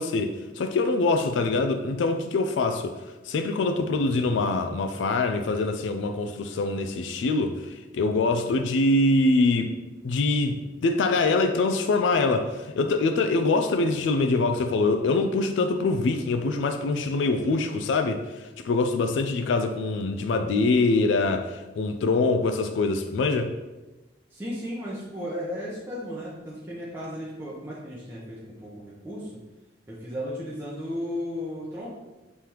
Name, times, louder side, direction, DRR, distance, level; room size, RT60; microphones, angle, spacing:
voice 1, 0.0-3.0 3.3-9.7 10.0-23.5, left 3 dB, 90° left, 7 dB, 0.3 m, -24 dB
voice 2, 24.3-29.3 29.9-31.9, equal, 15° right, -8 dB, 0.7 m, -35 dB
5.3 x 3.2 x 2.9 m, 1.1 s
head